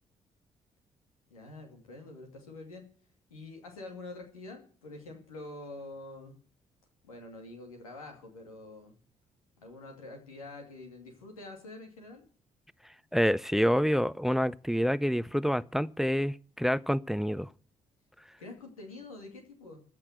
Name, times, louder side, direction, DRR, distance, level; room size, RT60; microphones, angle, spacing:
voice 1, 1.3-2.8 3.3-6.3 7.0-8.9 9.6-12.2 18.4-19.8, left 2 dB, 85° left, 2.5 m, -46 dB
voice 2, 13.1-17.5, equal, ahead, 0.6 m, -27 dB
14.5 x 6.1 x 9.3 m
figure-of-eight pair, 45°, 18 cm